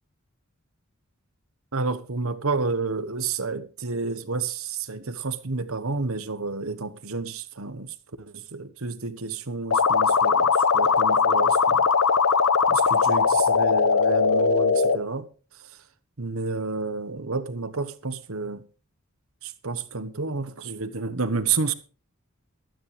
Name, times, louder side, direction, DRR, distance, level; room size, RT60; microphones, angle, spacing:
voice 1, 1.7-11.8 12.7-15.3 16.2-18.6 19.4-21.7, right 4 dB, 70° right, 1.2 m, -30 dB
sound 1, 9.7-15.0, left 5 dB, 75° left, 0.9 m, -20 dB
15.0 x 13.0 x 3.4 m
head